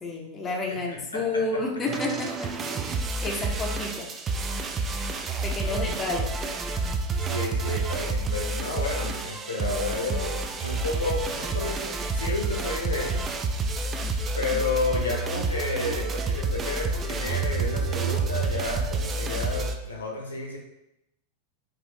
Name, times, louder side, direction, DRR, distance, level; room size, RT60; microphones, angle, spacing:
voice 1, 0.0-2.5 3.2-4.1 5.4-6.5, left 2 dB, 20° left, 0 dB, 0.6 m, -30 dB
voice 2, 0.7-1.6 3.3-3.6 5.6-5.9 7.2-13.3 13.7-13.8 14.3-20.6, left 3 dB, 75° left, -1 dB, 0.8 m, -32 dB
sound 1, 1.9-19.8, right 3 dB, 20° right, 0.3 m, -29 dB
4.0 x 2.4 x 3.1 m, 0.87 s
figure-of-eight pair, 90°, 0 cm